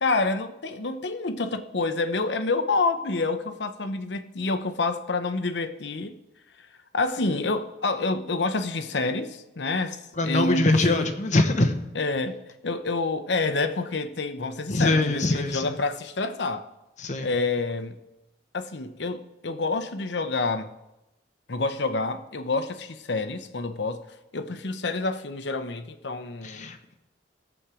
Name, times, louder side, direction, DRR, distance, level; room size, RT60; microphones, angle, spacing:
voice 1, 0.0-6.1 6.9-11.1 11.9-12.4 12.6-16.7 17.2-18.0 18.5-20.7 21.5-24.0 24.3-26.7, left 3 dB, 70° left, 0.8 m, -28 dB
voice 2, 10.2-11.8 14.7-15.7 17.0-17.3 26.4-26.8, left 2 dB, 40° left, 1.0 m, -23 dB
16.5 x 7.2 x 4.9 m
head